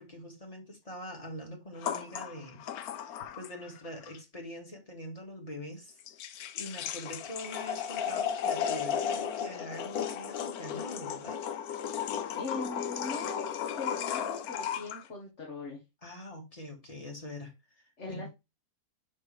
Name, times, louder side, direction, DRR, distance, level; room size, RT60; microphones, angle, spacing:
voice 1, 0.0-6.0 6.5-11.4 16.0-17.5 18.1-18.3, left 1 dB, 25° left, 2.2 m, -43 dB
sound 1, 1.8-3.8 4.1-4.2 5.9-15.0, left 8 dB, 90° left, 1.2 m, -35 dB
voice 2, 12.4-15.8 18.0-18.3, left 2 dB, 50° left, 2.0 m, -40 dB
6.6 x 6.3 x 3.4 m
omnidirectional pair, 1.5 m